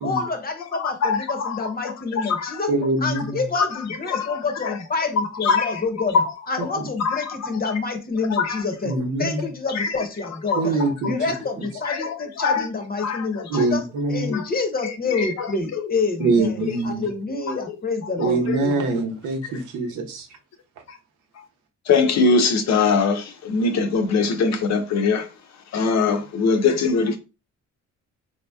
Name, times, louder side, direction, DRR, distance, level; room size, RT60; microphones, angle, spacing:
voice 1, 0.0-2.7 3.0-8.9 9.2-10.8 11.1-13.8 14.1-19.0, left 4 dB, 30° left, 0.8 m, -28 dB
voice 2, 0.7-2.6 3.5-3.7 4.1-4.4 4.7-4.8 5.4-5.8 6.1-6.2 7.0-7.5 8.3-8.6 9.2-9.3 9.7-9.9 10.5-10.9 11.8-12.7 13.0-13.3 13.5-13.7 14.3-14.4 14.8-15.9 18.2-18.6 20.9-21.0 21.9-25.3 25.7-27.2, left 4 dB, 60° left, 0.7 m, -22 dB
voice 3, 2.7-3.4 8.8-9.5 10.6-11.2 13.5-14.3 16.2-17.1 18.2-20.3, right 3 dB, 85° right, 0.9 m, -23 dB
3.9 x 2.8 x 2.2 m
cardioid pair, 90°, 30 cm